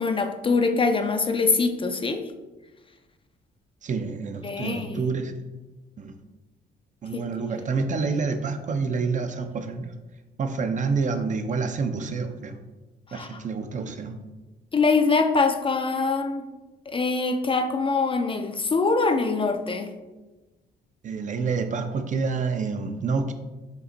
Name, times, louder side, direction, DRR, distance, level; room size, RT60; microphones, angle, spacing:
voice 1, 0.0-2.3 4.4-5.1 7.1-7.2 13.1-13.3 14.7-16.5 16.9-19.9, left 4 dB, 25° left, 7 dB, 0.4 m, -23 dB
voice 2, 3.8-5.3 6.0-6.1 7.0-9.8 10.4-12.6 13.1-14.2 21.0-23.3, right 4 dB, 40° right, 8 dB, 0.4 m, -28 dB
5.2 x 2.5 x 3.9 m, 1.2 s
cardioid pair, 90°, 20 cm